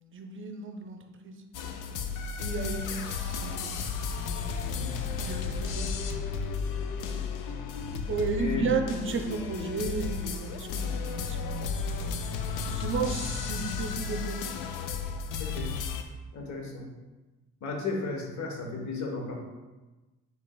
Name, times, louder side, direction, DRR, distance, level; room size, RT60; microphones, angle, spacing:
voice 1, 0.1-1.4 2.4-3.8 4.2-4.6 5.2-5.9 8.1-12.3 12.7-14.6, right 4 dB, 40° right, 5 dB, 0.5 m, -34 dB
sound 1, 1.5-16.0, left 5 dB, 75° left, 0.5 m, -33 dB
voice 2, 15.4-15.7 16.3-16.9 17.6-19.3, left 4 dB, 60° left, 1 dB, 1.0 m, -34 dB
4.9 x 3.4 x 2.2 m, 1.2 s
supercardioid pair, 65°, 32 cm